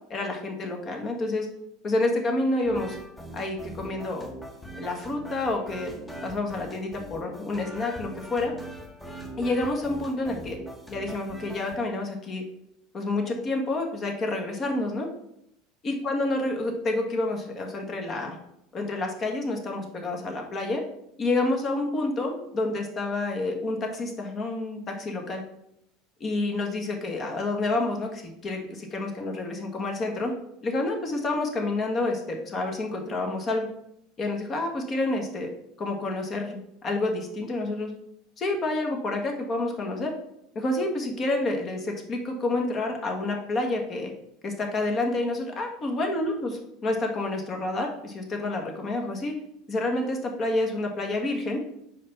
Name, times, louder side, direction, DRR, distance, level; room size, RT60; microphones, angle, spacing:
voice 1, 0.1-1.5 1.8-3.0 3.3-4.3 4.8-5.9 6.2-8.5 9.4-10.6 10.9-12.4 12.9-15.1 15.8-18.4 18.7-20.8 21.2-25.4 26.2-30.3 30.6-33.7 34.2-35.5 35.8-37.9 38.4-40.1 40.5-44.1 44.4-46.5 46.8-49.4 49.7-51.6, left 2 dB, 35° left, 2 dB, 1.5 m, -28 dB
sound 1, 2.6-11.8, right 1 dB, 15° left, 1.1 m, -41 dB
5.0 x 4.1 x 5.5 m, 0.77 s
hypercardioid pair, 75°, 0 cm